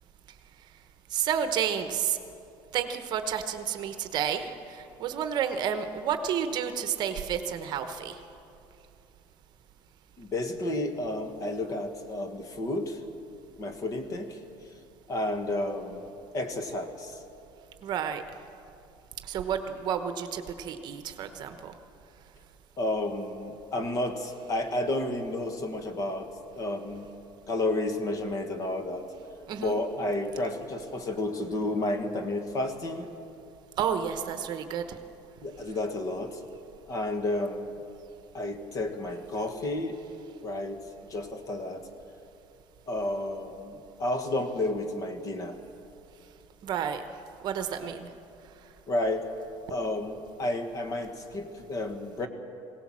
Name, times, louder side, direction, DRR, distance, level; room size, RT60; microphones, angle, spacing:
voice 1, 1.1-2.2 2.7-8.2 17.8-18.2 19.2-21.7 29.5-29.8 33.8-34.8 46.6-47.0 47.4-48.1, right 8 dB, 45° right, 8 dB, 1.1 m, -30 dB
voice 2, 10.2-13.0 13.6-14.4 15.1-16.0 16.3-17.2 22.8-27.1 27.5-29.1 29.6-33.1 35.4-36.4 36.8-37.7 38.3-40.0 40.4-40.8 41.1-41.9 42.9-45.6 48.9-49.3 49.7-52.3, left 1 dB, 30° left, 7 dB, 1.5 m, -31 dB
21.5 x 17.5 x 7.5 m, 2.7 s
cardioid pair, 180°, 10 cm